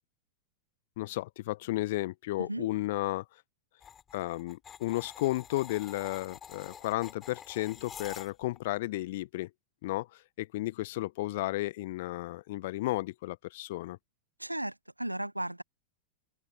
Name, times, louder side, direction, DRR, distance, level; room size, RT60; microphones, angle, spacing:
voice 1, 1.0-3.2 4.1-9.5 9.8-10.1 10.4-14.0, left 18 dB, 50° left, 1.0 m, -33 dB
sound 1, 3.8-8.6, left 8 dB, 25° left, 6.3 m, -47 dB
voice 2, 14.4-15.6, right 1 dB, 85° right, 1.0 m, -35 dB
open air
figure-of-eight pair, 90°, 0 cm